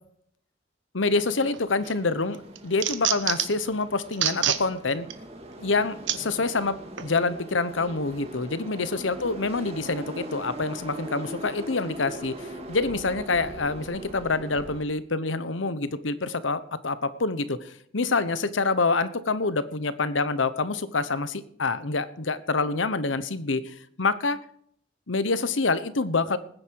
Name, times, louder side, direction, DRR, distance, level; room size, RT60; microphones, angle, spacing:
voice 1, 0.9-5.1 5.6-24.4 25.1-26.4, left 3 dB, 90° left, 14 dB, 1.1 m, -27 dB
sound 1, 1.0-14.8, right 1 dB, 35° right, 2.4 m, -41 dB
sound 2, 1.5-2.0 2.3-3.6 4.1-4.6 5.1-5.2 6.1-6.2 7.0-7.1, right 11 dB, 80° right, 1.3 m, -26 dB
20.0 x 9.9 x 4.7 m, 0.67 s
head